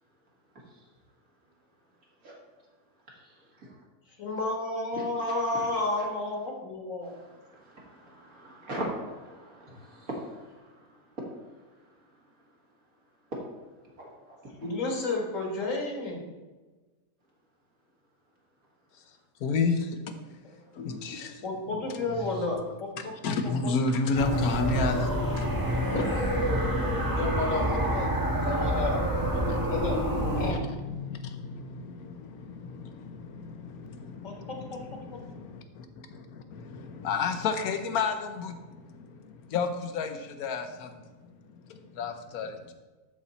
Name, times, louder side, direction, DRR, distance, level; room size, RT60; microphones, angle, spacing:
voice 1, 4.2-7.2 14.6-16.2 21.4-22.9 27.1-28.1 28.4-29.0 29.7-30.0 30.4-30.6 34.2-34.8, left 2 dB, 60° left, 0 dB, 1.9 m, -31 dB
voice 2, 5.5-6.1 7.5-10.4 14.0-14.4, right 1 dB, 70° right, -3 dB, 2.3 m, -39 dB
voice 3, 19.4-20.1 20.7-21.5 21.9-22.3 23.0-27.2 27.7-28.0 28.3-42.7, left 4 dB, 85° left, 7 dB, 1.3 m, -33 dB
sound 1, 24.1-30.5, equal, 15° right, 1.3 m, -27 dB
12.5 x 4.3 x 4.1 m, 1.3 s
omnidirectional pair, 1.5 m